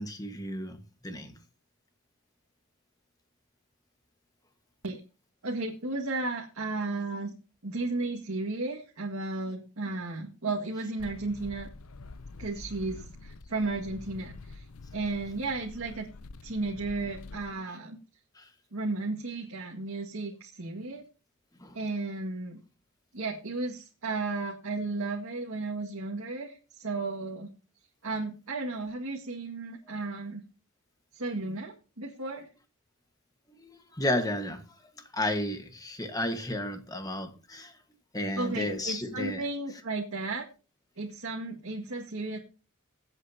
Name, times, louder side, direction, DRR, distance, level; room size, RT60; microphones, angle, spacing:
voice 1, 0.0-1.4 18.3-18.5 21.6-21.8 33.6-37.8 38.1-39.4, left 1 dB, 15° left, 1.4 m, -33 dB
voice 2, 5.4-7.3 7.6-11.7 12.4-14.6 14.9-16.1 16.4-18.0 18.7-21.0 21.7-22.6 23.1-27.5 28.0-30.4 31.1-32.5 38.3-40.4 41.0-42.4, right 3 dB, 80° right, 1.9 m, -34 dB
sound 1, 11.0-17.5, left 3 dB, 80° left, 0.7 m, -46 dB
24.0 x 8.1 x 2.8 m
head